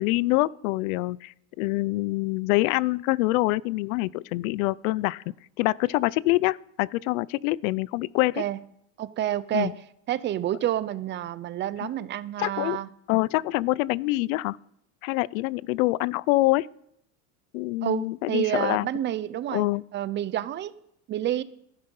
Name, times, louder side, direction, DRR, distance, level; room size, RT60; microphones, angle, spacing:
voice 1, 0.0-5.2 5.6-8.4 9.5-9.7 11.8-11.9 12.4-12.8 13.1-14.6 15.0-16.7 17.5-18.9 19.5-19.8, left 20 dB, 80° left, 0.6 m, -25 dB
voice 2, 9.0-9.8 10.1-12.9 17.8-19.7 19.9-20.7 21.1-21.4, right 12 dB, 30° right, 0.5 m, -29 dB
14.0 x 12.0 x 5.3 m
supercardioid pair, 140°, 41 cm